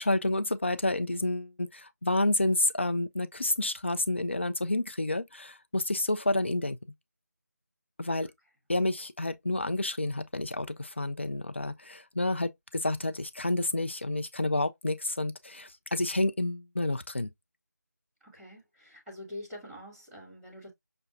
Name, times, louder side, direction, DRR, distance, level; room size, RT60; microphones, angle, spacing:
voice 1, 0.0-6.8 8.0-8.3 8.7-17.3, left 2 dB, 40° left, 0.4 m, -29 dB
voice 2, 18.2-20.7, left 1 dB, ahead, 0.8 m, -45 dB
5.9 x 2.2 x 2.5 m
figure-of-eight pair, 170°, 10 cm